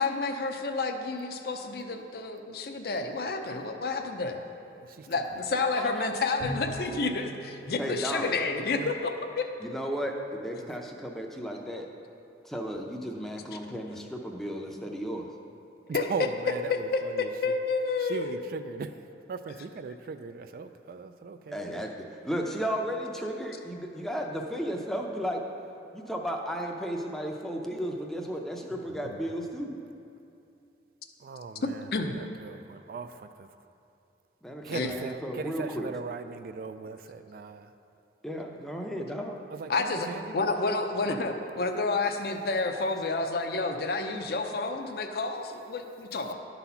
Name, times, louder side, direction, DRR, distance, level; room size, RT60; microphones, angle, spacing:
voice 1, 0.0-4.4 5.1-9.5 13.2-13.3 15.9-16.1 16.7-16.8 17.4-18.3 29.1-29.2 31.9-32.1 34.7-34.9 39.7-46.3, left 3 dB, 60° left, 5 dB, 0.6 m, -30 dB
Bowed string instrument, 6.4-9.0, equal, 75° right, 1.6 m, -41 dB
voice 2, 7.8-8.3 9.6-11.9 12.4-15.3 21.5-25.4 25.9-29.7 34.4-35.9 38.2-39.4, equal, ahead, 1 dB, 0.6 m, -34 dB
voice 3, 15.9-17.3 18.0-18.9 19.3-21.9 31.2-31.9 32.2-33.5 34.6-37.7 39.5-40.4, right 5 dB, 55° right, 9 dB, 0.3 m, -39 dB
11.5 x 4.1 x 5.6 m, 2.7 s
head